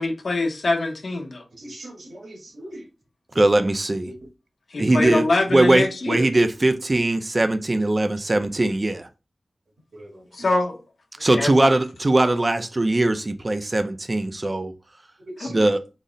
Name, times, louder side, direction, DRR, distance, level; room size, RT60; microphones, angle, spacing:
voice 1, 0.0-1.4 4.7-6.2 10.3-10.8 11.3-11.5 15.4-15.6, left 2 dB, 75° left, 0.8 m, -24 dB
voice 2, 1.6-2.9 9.9-10.5 15.3-15.7, right 1 dB, 85° right, 1.5 m, -40 dB
voice 3, 3.3-4.1 4.8-5.2 5.5-9.1 11.2-14.7 15.5-15.8, right 2 dB, 35° right, 0.5 m, -20 dB
3.9 x 2.1 x 3.7 m
wide cardioid pair, 80°, 0 cm